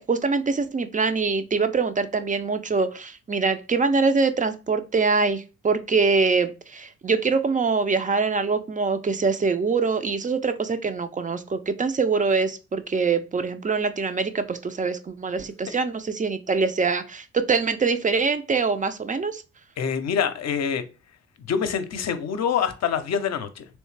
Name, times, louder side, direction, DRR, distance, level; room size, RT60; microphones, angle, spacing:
voice 1, 0.0-19.4, right 4 dB, 25° right, 0.5 m, -24 dB
voice 2, 19.8-20.8 21.5-23.7, left 7 dB, 55° left, 0.6 m, -25 dB
3.2 x 3.0 x 3.3 m
supercardioid pair, 50°, 33 cm